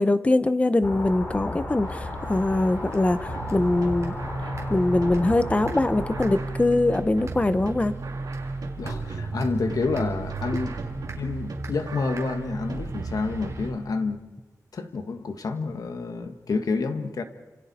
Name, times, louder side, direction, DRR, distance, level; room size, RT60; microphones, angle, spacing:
voice 1, 0.0-4.1 4.7-7.9, left 2 dB, 20° left, 0.7 m, -22 dB
sound 1, 0.8-6.4, left 2 dB, 40° left, 3.4 m, -34 dB
sound 2, 1.8-13.7, right 3 dB, 50° right, 3.6 m, -47 dB
sound 3, 3.3-13.8, right 3 dB, 90° right, 2.6 m, -33 dB
voice 2, 8.8-10.7 11.1-14.2 14.7-17.2, left 4 dB, 70° left, 1.5 m, -29 dB
29.5 x 26.5 x 4.3 m
wide cardioid pair, 165°, 6 cm